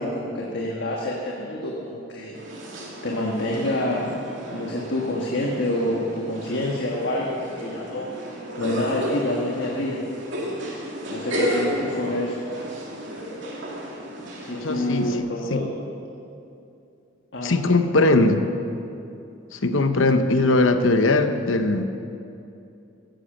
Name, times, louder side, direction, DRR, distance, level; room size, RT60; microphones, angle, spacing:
voice 1, 0.0-2.4 3.0-4.2 4.5-8.1 8.6-10.0 11.1-12.4 14.4-15.7 17.3-17.5, left 1 dB, 60° left, -2 dB, 1.5 m, -27 dB
sound 1, 2.3-15.2, equal, 65° right, 2.7 m, -33 dB
voice 2, 14.6-15.1 15.5-15.6 17.4-18.4 19.5-21.8, left 2 dB, 80° left, 8 dB, 1.0 m, -20 dB
14.5 x 10.5 x 7.2 m, 2.7 s
head